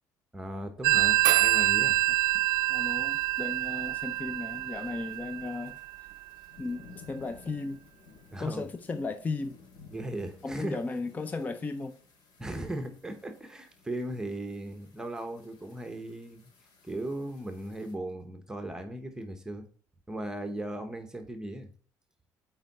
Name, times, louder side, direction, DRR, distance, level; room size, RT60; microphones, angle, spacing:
voice 1, 0.3-2.0 8.3-8.7 9.9-10.8 12.4-16.5 16.8-19.7 20.1-21.7, right 1 dB, 10° right, 0.9 m, -37 dB
Telephone, 0.8-6.2, right 17 dB, 90° right, 0.4 m, -26 dB
sound 1, 1.3-17.9, left 4 dB, 75° left, 2.0 m, -57 dB
voice 2, 2.7-5.8 6.6-7.8 8.4-9.6 10.4-12.0, left 3 dB, 25° left, 0.5 m, -35 dB
8.1 x 4.6 x 4.1 m
cardioid pair, 125°, 7 cm